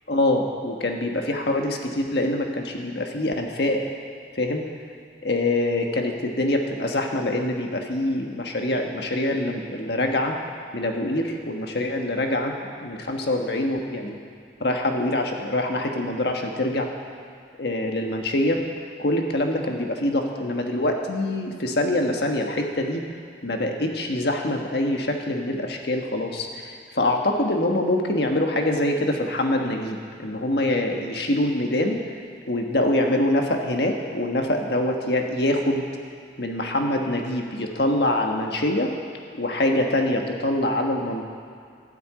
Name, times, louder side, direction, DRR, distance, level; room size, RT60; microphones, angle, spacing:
voice 1, 0.1-3.8 4.3-4.6 5.2-10.3 10.7-12.5 12.8-14.2 14.6-16.9 17.6-18.6 19.0-23.0 23.4-32.0 32.5-35.8 36.4-38.9 39.3-41.2, left 1 dB, 65° left, 2 dB, 1.4 m, -24 dB
12.5 x 7.9 x 8.8 m, 2.3 s
head